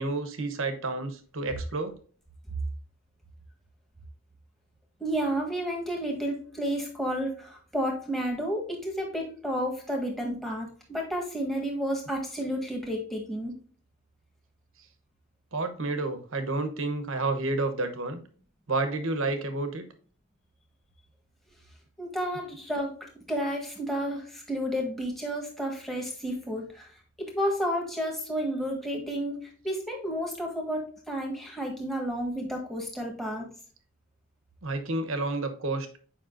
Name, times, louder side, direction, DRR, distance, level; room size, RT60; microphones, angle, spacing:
voice 1, 0.0-2.0 15.5-18.2 18.7-19.8 34.6-35.9, right 2 dB, 70° right, 8 dB, 1.1 m, -30 dB
voice 2, 5.0-13.5 22.0-33.5, equal, ahead, -1 dB, 1.5 m, -31 dB
7.6 x 5.3 x 2.6 m, 0.43 s
head